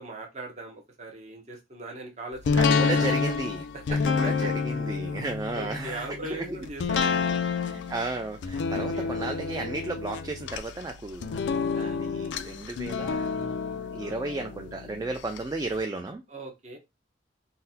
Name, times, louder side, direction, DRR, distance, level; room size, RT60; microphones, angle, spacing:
voice 1, 0.0-3.1 3.9-4.5 5.5-7.5 8.7-9.1 11.7-12.0 14.0-14.3 16.3-16.8, right 2 dB, 40° right, 0.7 m, -40 dB
sound 1, 2.4-15.4 15.8-15.9, left 5 dB, 80° left, 0.3 m, -29 dB
voice 2, 2.6-4.0 4.4-6.4 7.5-11.5 11.8-16.2, right 2 dB, 20° right, 0.3 m, -34 dB
3.8 x 2.1 x 2.7 m
head